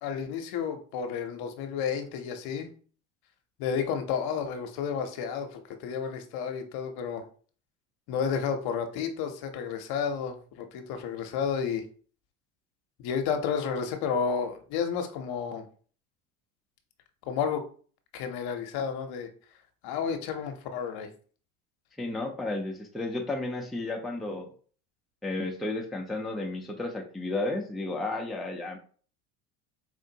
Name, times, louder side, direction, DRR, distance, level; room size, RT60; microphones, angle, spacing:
voice 1, 0.0-2.7 3.6-7.2 8.1-11.8 13.0-15.6 17.3-17.6 18.1-19.3 19.8-21.1, left 6 dB, 55° left, 6 dB, 0.8 m, -31 dB
voice 2, 22.0-24.5 25.2-28.8, left 2 dB, ahead, 0 dB, 0.5 m, -32 dB
4.5 x 2.5 x 2.8 m, 0.43 s
hypercardioid pair, 85°, 44 cm